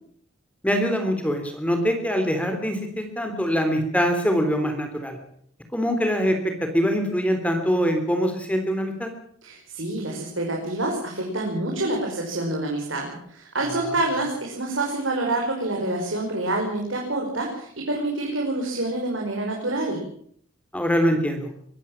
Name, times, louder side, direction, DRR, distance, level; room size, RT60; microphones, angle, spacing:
voice 1, 0.6-5.2 5.7-9.1 13.9-14.0 20.7-21.5, equal, 5° left, 6 dB, 3.5 m, -23 dB
voice 2, 9.4-20.0, right 2 dB, 70° right, 0 dB, 5.4 m, -27 dB
23.5 x 16.0 x 7.3 m, 0.63 s
head